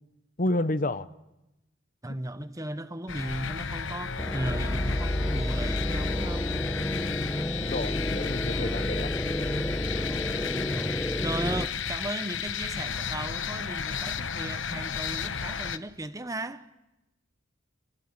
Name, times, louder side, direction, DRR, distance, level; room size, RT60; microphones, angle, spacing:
voice 1, 0.4-1.1 7.5-9.1, left 1 dB, 40° left, 0.9 m, -30 dB
voice 2, 2.0-6.5 8.5-8.9 9.9-16.7, right 1 dB, 15° right, 0.9 m, -37 dB
sound 1, 3.1-15.8, left 7 dB, 65° left, 1.0 m, -34 dB
sound 2, 4.2-11.7, left 1 dB, 10° left, 0.9 m, -30 dB
26.5 x 22.5 x 8.8 m
head